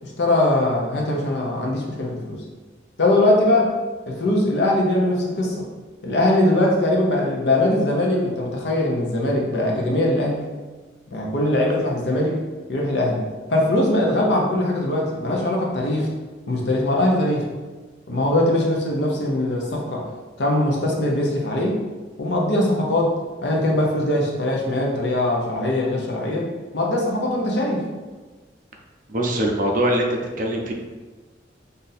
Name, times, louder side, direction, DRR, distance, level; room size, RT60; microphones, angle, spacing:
voice 1, 0.0-2.4 3.0-3.7 4.1-5.7 6.0-10.4 11.1-12.4 12.7-13.2 13.5-16.1 16.5-17.4 18.1-20.0 20.4-21.8 22.2-23.1 23.4-26.4 26.7-27.8, left 1 dB, 65° left, -1 dB, 0.7 m, -21 dB
voice 2, 29.1-30.1 30.4-30.7, right 1 dB, 45° right, 1 dB, 0.5 m, -22 dB
2.6 x 2.6 x 4.0 m, 1.3 s
head